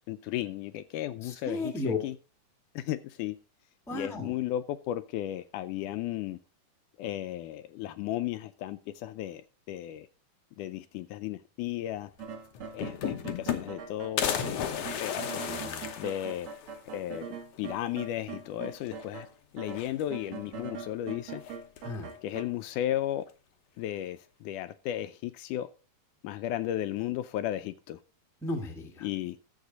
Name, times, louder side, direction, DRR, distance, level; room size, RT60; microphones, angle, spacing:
voice 1, 0.1-2.2 2.8-3.4 3.9-6.4 7.0-10.1 10.6-12.1 12.7-14.7 15.0-15.5 16.0-16.5 16.9-19.3 19.5-21.4 22.2-23.2 23.8-25.7 26.2-28.0 29.0-29.4, left 12 dB, 80° left, 12 dB, 2.0 m, -34 dB
voice 2, 1.2-2.0 3.9-4.3 14.6-14.9 15.1-16.1 21.8-22.1 28.4-29.1, left 2 dB, ahead, 1 dB, 0.7 m, -36 dB
sound 1, 12.2-12.3 12.5-13.9 14.2-16.8 17.2-17.3 17.5-17.6 18.8-19.3 19.6-20.4 21.4-22.0, left 9 dB, 65° left, 1.7 m, -34 dB
sound 2, 12.2-19.3 19.6-22.4, right 5 dB, 55° right, 2.6 m, -42 dB
11.5 x 7.3 x 4.0 m, 0.36 s
omnidirectional pair, 3.8 m